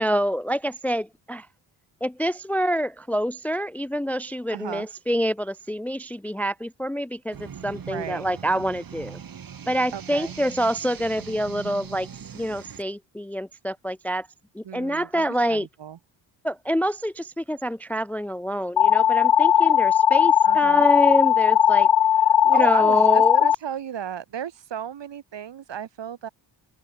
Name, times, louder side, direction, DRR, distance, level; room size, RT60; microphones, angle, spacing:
voice 1, 0.0-1.5 2.0-9.2 9.7-12.1 12.3-14.3 14.5-15.7 16.4-21.9 22.4-23.5, equal, 5° left, 0.5 m, -26 dB
voice 2, 4.5-4.9 7.9-8.3 9.9-10.3 14.6-16.0 20.4-20.9 22.1-26.3, right 9 dB, 65° right, 5.9 m, -34 dB
sound 1, 7.3-12.8, right 7 dB, 45° right, 4.5 m, -40 dB
sound 2, 18.8-23.6, left 10 dB, 60° left, 2.1 m, -18 dB
open air
wide cardioid pair, 155°, 47 cm